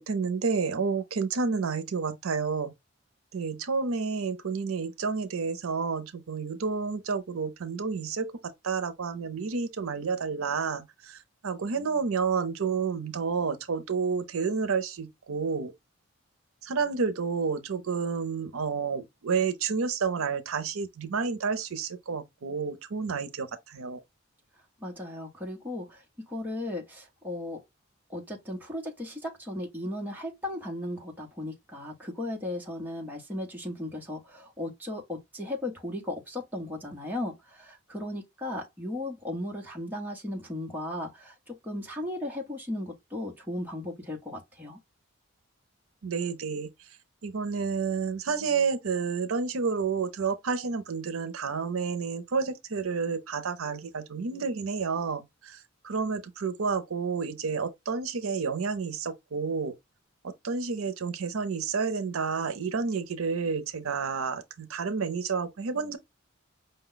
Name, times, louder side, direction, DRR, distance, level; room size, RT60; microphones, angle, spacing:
voice 1, 0.1-2.7 3.3-8.4 8.6-11.2 11.4-15.7 16.6-24.0 46.0-46.7 47.2-55.6 55.8-59.7 60.4-66.0, right 5 dB, 80° right, 0.6 m, -30 dB
voice 2, 24.8-27.6 28.1-44.8, left 1 dB, 10° right, 0.9 m, -36 dB
5.2 x 2.2 x 3.8 m
head